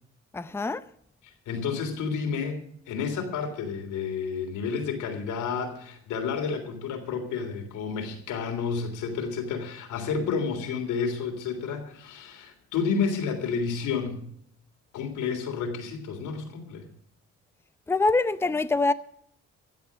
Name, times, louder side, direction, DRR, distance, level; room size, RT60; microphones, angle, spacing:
voice 1, 0.3-0.8 17.9-18.9, left 3 dB, 10° left, 0.6 m, -24 dB
voice 2, 1.5-2.6 2.9-14.2 14.9-16.8, left 5 dB, 85° left, 3.4 m, -30 dB
15.5 x 7.9 x 7.4 m
cardioid pair, 90°, 30 cm